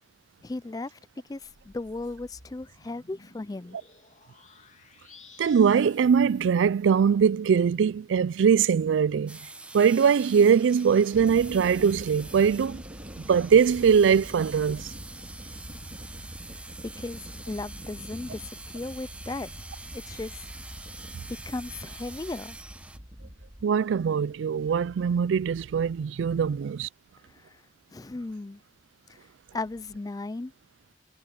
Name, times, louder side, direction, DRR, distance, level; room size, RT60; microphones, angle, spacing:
voice 1, 0.4-1.0 1.3-3.8 16.5-19.5 19.9-20.5 21.5-22.6 27.3-27.6 27.9-28.6 29.1-29.3 29.5-30.5, left 2 dB, 20° left, 0.3 m, -36 dB
sound 1, 1.3-7.1, left 3 dB, 40° left, 2.5 m, -55 dB
voice 2, 5.4-9.4 9.7-12.8 13.3-14.9 23.6-26.9, right 7 dB, 80° right, 0.3 m, -22 dB
sound 2, 9.3-23.0, right 2 dB, 5° right, 0.9 m, -45 dB
sound 3, 11.1-23.6, equal, 30° right, 2.1 m, -44 dB
head